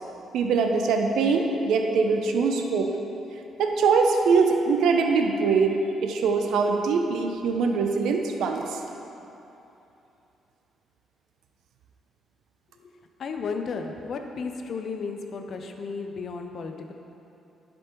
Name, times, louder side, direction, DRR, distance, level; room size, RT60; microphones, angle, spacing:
voice 1, 0.3-2.9 3.6-8.8, right 4 dB, 80° right, 4 dB, 0.6 m, -23 dB
voice 2, 13.2-16.9, left 4 dB, 55° left, 5 dB, 0.6 m, -34 dB
11.0 x 5.2 x 3.1 m, 2.9 s
cardioid pair, 90°, 0 cm